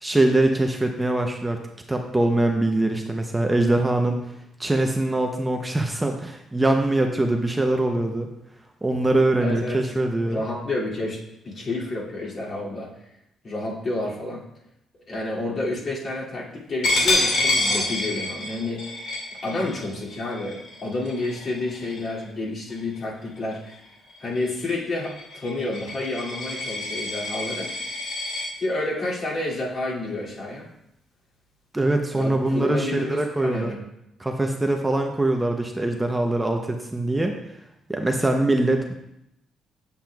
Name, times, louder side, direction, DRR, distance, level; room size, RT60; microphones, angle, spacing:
voice 1, 0.0-1.6 1.9-4.2 4.6-8.3 8.8-10.4 31.7-33.7 34.2-37.4 37.9-39.0, right 2 dB, 15° right, 3 dB, 0.6 m, -23 dB
voice 2, 9.4-9.8 10.2-11.2 11.4-12.9 13.4-14.4 15.1-18.9 19.4-23.8 24.2-27.7 28.6-30.7 32.1-33.8, left 2 dB, 50° left, -5 dB, 2.4 m, -29 dB
Coin (dropping), 16.8-22.2 22.7-23.0 23.4-28.5, left 2 dB, 75° left, 2.0 m, -28 dB
7.6 x 6.9 x 2.3 m, 0.82 s
cardioid pair, 90°, 0 cm